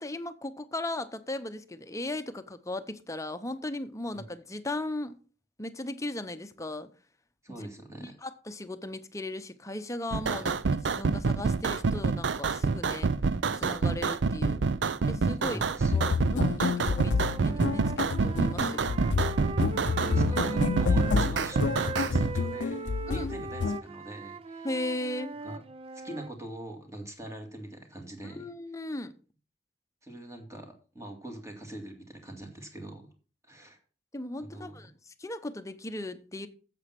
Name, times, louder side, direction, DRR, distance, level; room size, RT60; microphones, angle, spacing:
voice 1, 0.0-5.2 5.6-6.9 7.5-7.7 8.0-13.1 13.5-14.6 15.0-15.6 15.9-18.9 20.9-21.0 23.1-23.3 24.6-25.3 28.3-29.1 34.1-36.5, left 1 dB, 20° left, 0.8 m, -37 dB
voice 2, 7.4-8.2 10.3-10.6 15.4-16.1 19.8-24.7 25.4-25.6 26.0-28.5 30.0-33.1 33.4-33.8 34.4-34.8, right 1 dB, 15° right, 2.3 m, -43 dB
sound 1, 10.1-22.3, right 4 dB, 85° right, 0.5 m, -27 dB
sound 2, 15.9-23.8, left 5 dB, 75° left, 0.5 m, -29 dB
Wind instrument woodwind instrument, 16.8-21.2 21.5-26.3, right 4 dB, 35° right, 0.5 m, -40 dB
8.5 x 7.6 x 6.0 m
head